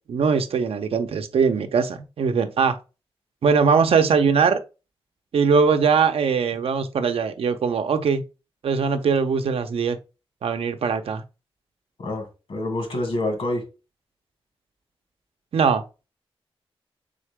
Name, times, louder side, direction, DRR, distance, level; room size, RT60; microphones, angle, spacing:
voice 1, 0.1-2.8 3.4-4.6 5.3-8.2 8.6-10.0 10.4-11.2 15.5-15.8, right 5 dB, 80° right, 0.6 m, -21 dB
voice 2, 12.0-13.6, left 1 dB, 80° left, 1.9 m, -27 dB
3.9 x 3.7 x 3.4 m
wide cardioid pair, 105°, 10 cm